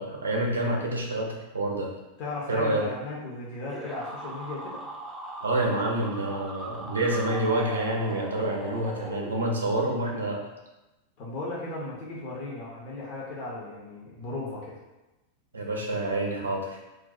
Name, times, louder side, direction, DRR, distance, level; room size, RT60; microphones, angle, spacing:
voice 1, 0.0-1.9 2.5-2.8 5.4-10.4 15.5-16.8, right 1 dB, 75° right, -1 dB, 0.6 m, -28 dB
voice 2, 2.2-4.9 11.2-14.8, left 2 dB, 45° left, -5 dB, 0.7 m, -36 dB
sound 1, 3.7-9.7, right 1 dB, 5° right, 0.4 m, -39 dB
2.5 x 2.2 x 4.0 m, 1.0 s
figure-of-eight pair, 90°, 0 cm